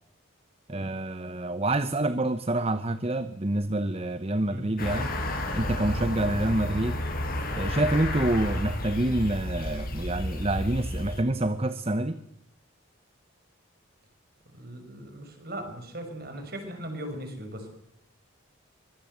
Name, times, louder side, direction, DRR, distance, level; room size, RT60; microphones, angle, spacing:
voice 1, 0.7-5.1 5.5-7.0 7.5-12.2, right 1 dB, 30° right, 1.0 m, -27 dB
sound 1, 4.8-11.2, left 1 dB, 45° left, 6.0 m, -31 dB
voice 2, 14.6-17.7, right 1 dB, 50° right, 6.3 m, -38 dB
24.5 x 23.5 x 8.0 m
head